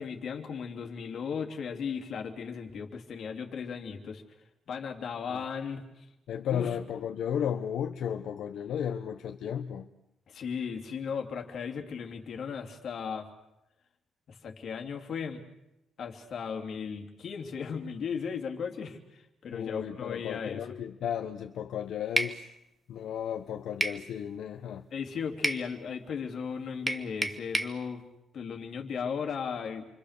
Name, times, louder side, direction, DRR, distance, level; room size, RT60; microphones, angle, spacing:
voice 1, 0.0-4.2 4.7-5.8 6.5-6.7 10.3-13.3 14.4-15.4 16.0-20.6 24.9-28.0 28.3-29.9, left 6 dB, 50° left, 3 dB, 3.1 m, -36 dB
voice 2, 6.3-9.9 19.5-22.5 22.9-24.8, left 9 dB, 70° left, 4 dB, 1.1 m, -34 dB
sound 1, 22.2-22.4 23.8-24.0 25.4-25.7 26.9-27.8, right 2 dB, 15° right, 1.2 m, -29 dB
29.0 x 25.0 x 6.8 m, 0.91 s
cardioid pair, 175°, 0 cm